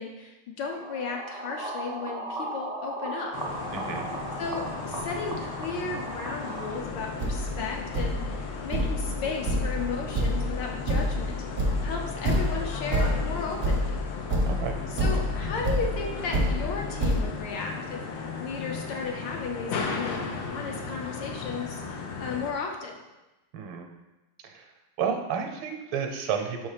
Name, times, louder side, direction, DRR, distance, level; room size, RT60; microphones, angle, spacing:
voice 1, 0.0-3.3 4.4-11.4 11.8-13.9 14.9-23.0, left 4 dB, 70° left, 1 dB, 1.2 m, -35 dB
sound 1, 0.7-6.7, right 2 dB, ahead, 0.5 m, -36 dB
sound 2, 3.3-22.5, left 4 dB, 90° left, 1.6 m, -36 dB
voice 2, 3.7-4.1 14.5-14.8 23.5-23.9 24.4-24.6 25.0-26.7, right 7 dB, 75° right, 4 dB, 1.5 m, -31 dB
Thump thud, 6.8-6.9 7.2-17.2, equal, 50° right, 0.6 m, -28 dB
5.4 x 4.3 x 4.9 m, 1.0 s
omnidirectional pair, 2.4 m